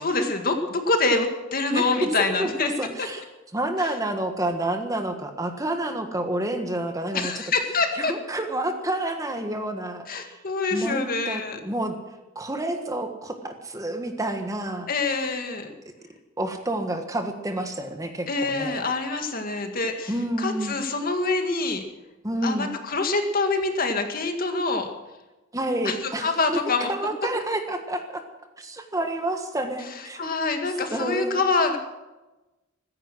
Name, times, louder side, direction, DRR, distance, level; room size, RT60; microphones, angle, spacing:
voice 1, 0.0-2.7 3.0-3.1 7.1-8.1 10.1-11.6 14.9-15.7 18.3-21.8 22.4-24.9 25.8-26.9 30.2-31.8, left 3 dB, 45° left, 5 dB, 2.0 m, -25 dB
voice 2, 2.4-3.2 3.5-7.3 7.9-10.4 10.7-12.0 12.3-14.9 16.4-18.8 20.1-20.8 22.2-22.7 25.5-26.6 26.9-28.2 28.6-30.5 30.9-31.4, right 1 dB, 15° right, 5 dB, 1.5 m, -29 dB
15.5 x 14.5 x 6.2 m, 1.1 s
head